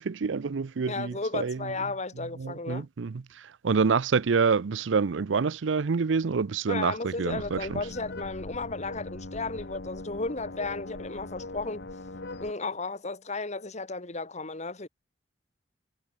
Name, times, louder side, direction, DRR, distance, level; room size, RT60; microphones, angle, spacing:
voice 1, 0.0-1.7 2.4-7.8, right 5 dB, 70° right, 0.5 m, -27 dB
voice 2, 0.9-2.9 6.7-11.8 12.4-14.9, left 3 dB, 40° left, 2.2 m, -34 dB
sound 1, 7.3-12.5, left 2 dB, 60° left, 1.5 m, -41 dB
head